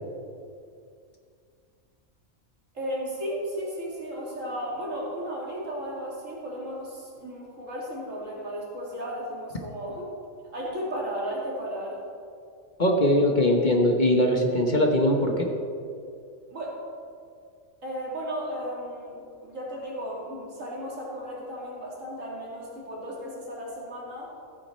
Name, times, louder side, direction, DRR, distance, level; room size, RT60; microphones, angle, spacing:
voice 1, 2.7-10.1 10.5-12.0 16.5-16.8 17.8-24.3, equal, 65° right, -4 dB, 3.0 m, -34 dB
voice 2, 12.8-15.5, left 1 dB, 35° left, 2 dB, 1.1 m, -21 dB
14.5 x 8.8 x 4.4 m, 2.3 s
omnidirectional pair, 1.4 m